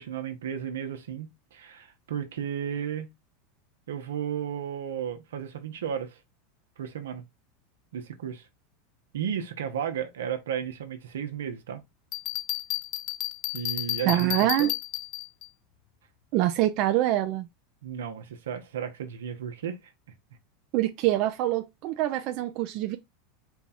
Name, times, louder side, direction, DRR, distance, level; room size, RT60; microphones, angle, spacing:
voice 1, 0.0-3.1 3.9-6.2 6.8-7.2 7.9-8.5 9.1-11.8 13.5-14.7 17.8-19.8, right 8 dB, 85° right, 0.9 m, -34 dB
Bell, 12.1-15.5, left 17 dB, 55° left, 0.4 m, -32 dB
voice 2, 14.1-14.7 16.3-17.5 20.7-23.0, right 14 dB, 55° right, 0.5 m, -25 dB
4.5 x 2.3 x 4.2 m
hypercardioid pair, 110°, 0 cm